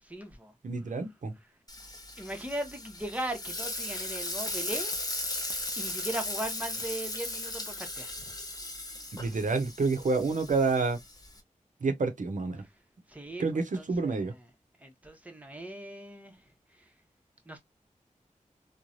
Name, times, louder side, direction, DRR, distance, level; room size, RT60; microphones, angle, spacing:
voice 1, 0.1-0.5 2.2-5.0 5.8-8.4 13.1-13.4 13.7-14.4 14.8-16.3 17.5-17.6, right 1 dB, 10° right, 0.8 m, -38 dB
voice 2, 0.6-1.3 9.2-11.0 11.8-12.6 13.4-14.3, right 4 dB, 70° right, 0.7 m, -28 dB
Frying (food), 1.7-11.4, left 2 dB, 30° left, 0.8 m, -37 dB
3.1 x 2.2 x 2.5 m
wide cardioid pair, 85°, 13 cm